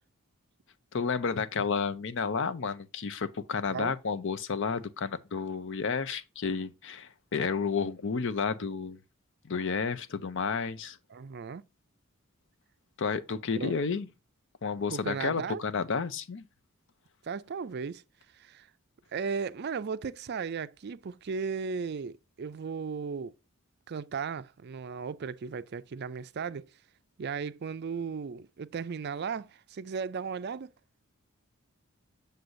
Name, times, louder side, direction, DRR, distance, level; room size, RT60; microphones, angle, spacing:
voice 1, 0.9-9.0 9.4-11.0 13.0-14.1 14.6-16.4, left 5 dB, 60° left, 0.6 m, -31 dB
voice 2, 11.1-11.6 13.5-13.7 14.9-15.6 17.2-18.0 18.3-18.7 19.1-23.3 23.9-26.7 27.2-30.7, right 5 dB, 50° right, 0.4 m, -36 dB
7.9 x 6.7 x 2.6 m
head